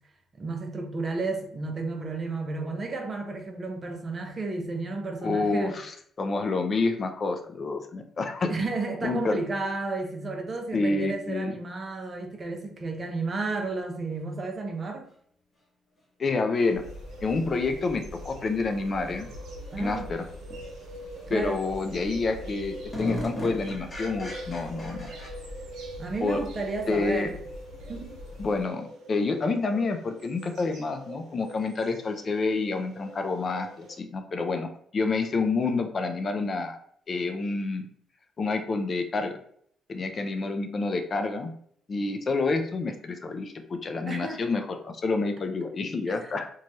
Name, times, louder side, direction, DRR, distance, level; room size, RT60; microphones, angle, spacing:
voice 1, 0.3-5.8 8.5-15.1 19.7-20.1 21.3-21.6 26.0-27.4 27.9-28.1 44.1-44.4 46.1-46.3, right 3 dB, 35° right, 3 dB, 0.6 m, -32 dB
voice 2, 5.2-8.5 9.0-9.4 10.7-11.5 16.2-16.8 17.2-19.3 19.8-20.2 21.3-25.1 26.2-26.4 26.9-27.3 28.4-36.8 37.1-37.9 38.4-39.4 39.9-41.5 41.9-46.5, left 3 dB, 35° left, 6 dB, 0.4 m, -28 dB
sound 1, 16.5-34.0, right 2 dB, 80° right, 0.7 m, -45 dB
sound 2, 16.7-28.6, left 2 dB, 65° left, 1.0 m, -44 dB
sound 3, 20.5-20.6 21.1-21.6 22.0-22.1 22.4-25.3, equal, 20° left, 0.9 m, -37 dB
3.1 x 2.3 x 2.6 m, 0.63 s
cardioid pair, 115°, 0 cm